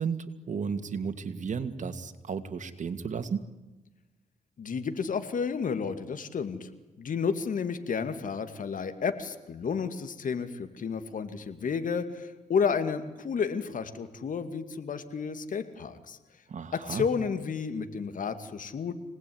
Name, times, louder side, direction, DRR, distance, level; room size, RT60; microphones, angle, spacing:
voice 1, 0.0-3.5 16.5-17.0, right 6 dB, 60° right, 8 dB, 2.5 m, -33 dB
voice 2, 4.6-6.7 7.0-16.2 16.7-18.9, left 6 dB, 65° left, 10 dB, 2.5 m, -31 dB
26.0 x 19.5 x 9.7 m, 1.1 s
cardioid pair, 65°, 14 cm